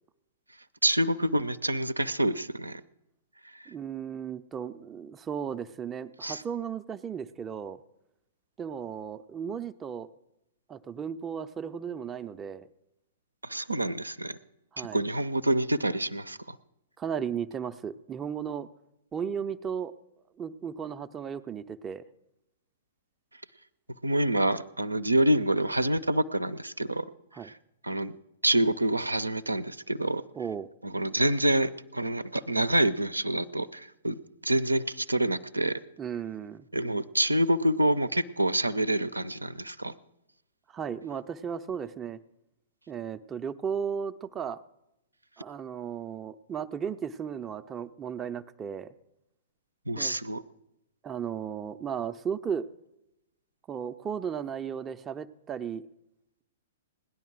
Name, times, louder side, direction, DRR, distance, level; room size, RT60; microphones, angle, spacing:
voice 1, 0.8-2.8 3.5-3.6 6.2-6.4 13.4-14.4 14.8-16.6 24.0-27.0 27.4-27.5 27.8-28.2 28.4-30.2 30.8-35.8 36.7-39.9 49.9-50.4, right 1 dB, 80° right, 14 dB, 0.6 m, -27 dB
voice 2, 3.7-7.8 8.6-10.1 10.7-12.7 14.7-15.0 17.0-18.7 19.1-19.9 20.4-22.0 27.3-27.5 30.3-30.7 36.0-36.7 40.7-42.2 42.9-44.6 45.4-48.9 50.0-50.2 51.0-52.7 53.7-55.8, right 7 dB, 20° right, 11 dB, 0.5 m, -35 dB
17.5 x 10.5 x 6.1 m, 0.88 s
figure-of-eight pair, 110°, 0 cm